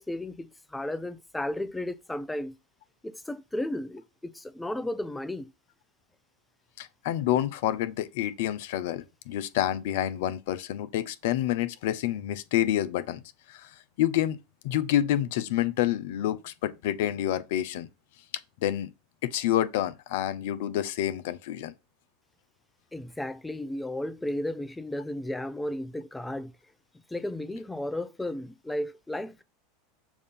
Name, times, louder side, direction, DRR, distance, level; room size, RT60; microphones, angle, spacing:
voice 1, 0.0-2.6 3.0-5.5 22.9-26.5 27.1-29.4, left 1 dB, 10° left, 0.5 m, -34 dB
voice 2, 6.8-13.2 13.5-14.4 14.6-17.9 18.6-18.9 19.2-21.7, left 12 dB, 70° left, 0.6 m, -28 dB
7.0 x 2.7 x 5.3 m
hypercardioid pair, 95°, 0 cm